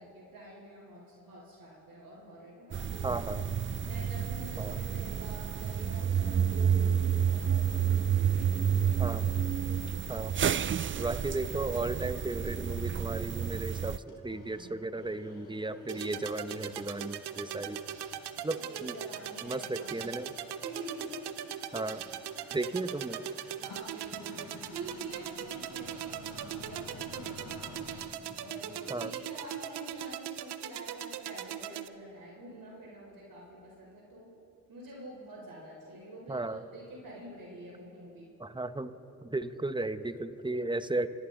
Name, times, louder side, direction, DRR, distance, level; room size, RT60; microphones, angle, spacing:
voice 1, 0.0-3.2 3.8-9.2 9.6-9.7 18.4-20.1 20.6-21.4 23.5-28.0 28.3-34.3 34.7-38.3, right 1 dB, 55° right, -4 dB, 4.2 m, -47 dB
sound 1, 2.7-14.0, right 8 dB, 30° right, 0.4 m, -30 dB
voice 2, 3.0-3.4 4.6-4.8 9.0-9.2 10.1-10.3 11.0-17.8 18.4-18.9 19.4-20.3 21.7-22.0 22.5-23.2 28.9-29.1 36.3-36.6 38.4-39.0 39.2-41.1, right 2 dB, 10° right, 12 dB, 0.9 m, -35 dB
sound 2, 14.1-29.1, left 3 dB, 65° left, 3.4 m, -51 dB
sound 3, 15.9-31.9, right 11 dB, 75° right, 0.6 m, -40 dB
29.0 x 11.5 x 3.9 m, 2.7 s
supercardioid pair, 40°, 40 cm